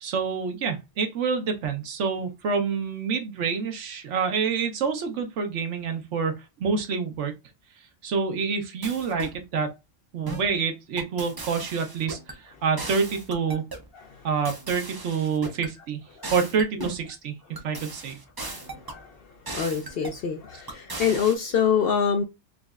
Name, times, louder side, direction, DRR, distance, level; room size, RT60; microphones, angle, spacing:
voice 1, 0.0-7.3 8.0-9.8 10.1-13.6 14.2-16.0 16.3-18.2, right 5 dB, 70° right, 1.1 m, -27 dB
sound 1, 8.8-9.4 10.3-10.5 11.0-12.4 12.8-13.9 14.4-15.7 16.2-17.1 17.6-19.0 19.5-20.2 20.7-21.3, right 2 dB, 30° right, 0.4 m, -37 dB
voice 2, 18.4-19.2 19.5-22.2, left 7 dB, 65° left, 0.6 m, -26 dB
3.8 x 3.1 x 2.3 m
omnidirectional pair, 1.3 m